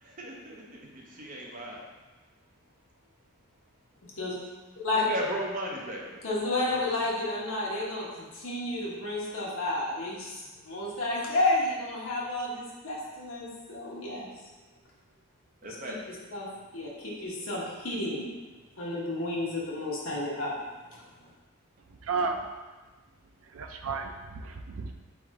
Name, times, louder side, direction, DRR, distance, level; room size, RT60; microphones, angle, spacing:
voice 1, 0.0-1.8 5.0-6.2 6.7-7.1 15.6-16.0 22.2-22.4, equal, 35° right, -2 dB, 0.7 m, -36 dB
voice 2, 6.2-14.3 15.9-16.5 16.7-18.3 18.8-20.6, left 2 dB, 65° left, -5 dB, 1.2 m, -31 dB
voice 3, 22.0-22.4 23.5-24.9, right 4 dB, 60° right, 5 dB, 0.4 m, -32 dB
4.3 x 3.4 x 3.6 m, 1.3 s
head